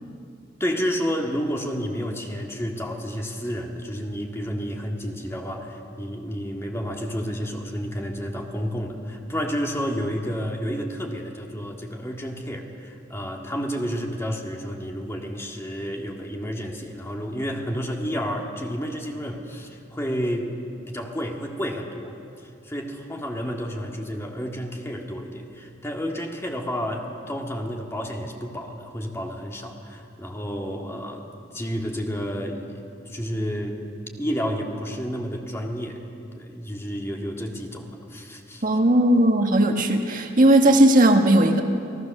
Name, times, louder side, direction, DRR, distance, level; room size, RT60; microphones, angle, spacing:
voice 1, 0.6-20.5 20.9-22.1 22.4-31.3 31.5-32.8 33.0-33.8 34.2-36.0 36.3-38.6, equal, 15° left, 1 dB, 1.9 m, -30 dB
voice 2, 38.6-41.6, right 1 dB, 45° right, 4 dB, 1.5 m, -17 dB
29.0 x 18.5 x 6.6 m, 2.6 s
head